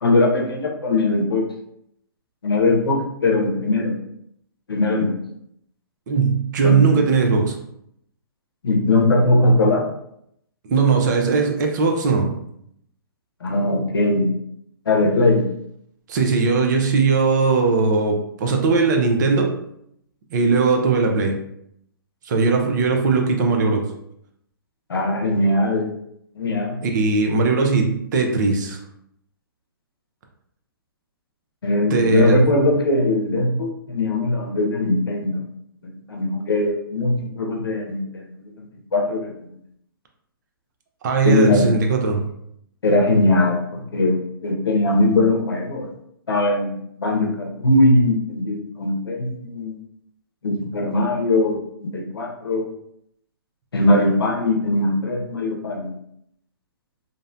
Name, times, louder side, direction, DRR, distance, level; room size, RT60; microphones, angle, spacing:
voice 1, 0.0-1.5 2.4-4.0 4.7-5.2 6.6-7.0 8.6-9.8 13.4-14.3 14.9-15.4 24.9-25.9 26.4-26.8 31.6-35.4 36.1-38.7 38.9-39.3 41.2-41.7 42.8-45.9 46.3-49.7 50.4-52.7 53.7-55.9, left 2 dB, 90° left, 1 dB, 0.6 m, -20 dB
voice 2, 6.1-7.6 10.6-12.4 16.1-19.6 20.3-21.4 22.2-23.9 26.8-28.8 31.9-32.4 41.0-42.2, right 4 dB, 50° right, 3 dB, 0.6 m, -19 dB
2.6 x 2.1 x 2.6 m, 0.73 s
hypercardioid pair, 135°, 12 cm